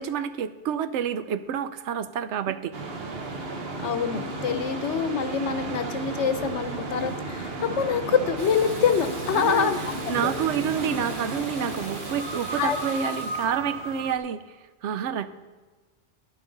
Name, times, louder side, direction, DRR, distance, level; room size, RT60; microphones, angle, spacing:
voice 1, 0.0-2.7 9.3-9.7 10.1-14.4 14.8-15.3, right 8 dB, 90° right, 12 dB, 0.9 m, -28 dB
sound 1, 2.7-14.2, right 2 dB, 60° right, 1.2 m, -34 dB
voice 2, 3.8-9.8 10.0-10.3 12.6-12.8, left 7 dB, 85° left, 10 dB, 1.1 m, -25 dB
Water tap faucet / Bathtub (filling or washing), 8.4-13.5, right 1 dB, 45° right, 1.8 m, -41 dB
12.5 x 10.5 x 3.9 m, 1.3 s
omnidirectional pair, 1.2 m